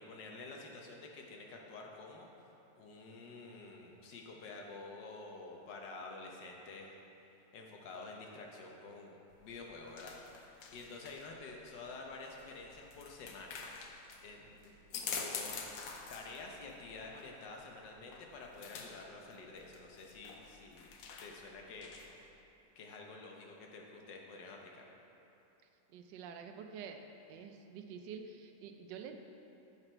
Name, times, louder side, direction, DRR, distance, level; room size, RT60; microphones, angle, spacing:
voice 1, 0.0-2.3 2.8-6.9 7.5-13.6 14.2-15.6 16.1-20.9 21.2-22.3 22.7-24.8, left 3 dB, 90° left, 0 dB, 1.6 m, -49 dB
sound 1, 9.3-22.3, left 5 dB, 65° left, 1.0 m, -47 dB
voice 2, 25.9-27.0 27.3-29.2, right 6 dB, 85° right, 6 dB, 1.3 m, -47 dB
7.8 x 5.9 x 4.4 m, 2.9 s
omnidirectional pair, 1.9 m